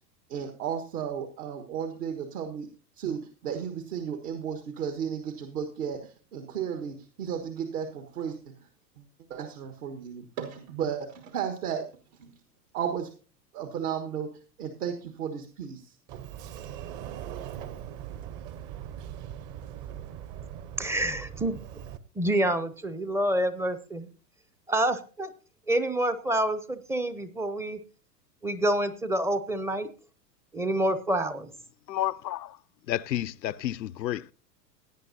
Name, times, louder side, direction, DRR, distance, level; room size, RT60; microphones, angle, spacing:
voice 1, 0.3-2.7 3.0-8.5 9.0-9.1 9.3-11.8 12.2-12.3 12.7-13.1 13.5-14.3 14.6-15.9, right 8 dB, 65° right, 1.5 m, -34 dB
Sliding door, 16.1-22.0, right 10 dB, 40° right, 1.0 m, -40 dB
voice 2, 20.8-21.6 22.2-24.1 24.7-25.3 25.7-27.8 28.4-29.9 30.5-31.5, right 1 dB, 5° right, 0.5 m, -27 dB
voice 3, 31.9-32.6 32.9-34.3, left 13 dB, 85° left, 0.5 m, -31 dB
17.5 x 9.5 x 2.7 m
hypercardioid pair, 95°, 49 cm